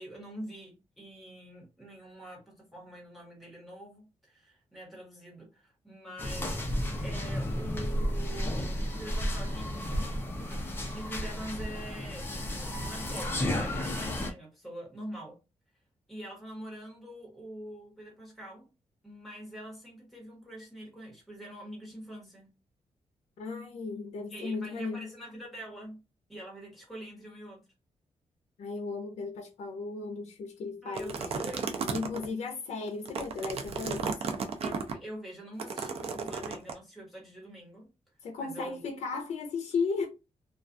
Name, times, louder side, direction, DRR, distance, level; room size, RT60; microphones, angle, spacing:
voice 1, 0.0-6.6 7.0-9.9 10.9-15.4 16.1-18.7 19.0-22.5 24.3-26.0 26.3-27.7 30.8-31.7 34.6-37.9 38.4-38.8, right 1 dB, ahead, 1.1 m, -45 dB
sound 1, 6.2-14.3, left 1 dB, 20° left, 0.5 m, -33 dB
voice 2, 23.4-25.1 28.6-31.1 31.9-34.1 38.2-40.1, left 4 dB, 70° left, 0.5 m, -35 dB
sound 2, 30.9-32.3 32.9-34.9 35.6-36.7, right 5 dB, 60° right, 0.4 m, -34 dB
2.3 x 2.2 x 2.5 m
wide cardioid pair, 165°, 12 cm